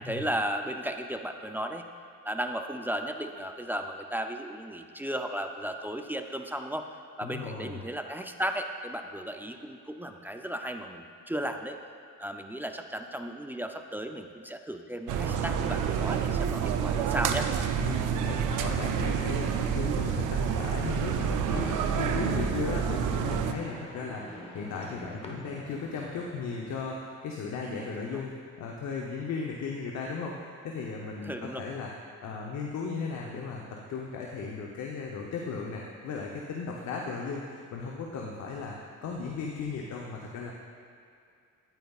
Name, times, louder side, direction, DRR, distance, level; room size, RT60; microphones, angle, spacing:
voice 1, 0.0-1.8 2.2-6.9 7.2-11.8 12.2-17.5 27.6-28.2 31.2-31.6, right 1 dB, 5° right, 5 dB, 0.4 m, -35 dB
voice 2, 7.2-7.8 17.7-31.9 32.2-40.5, left 5 dB, 65° left, -1 dB, 0.8 m, -36 dB
sound 1, 15.1-23.5, right 8 dB, 85° right, 0.5 m, -28 dB
sound 2, 21.5-26.8, left 1 dB, 20° left, 1.1 m, -43 dB
9.3 x 9.1 x 2.4 m, 2.3 s
cardioid pair, 90°, 30 cm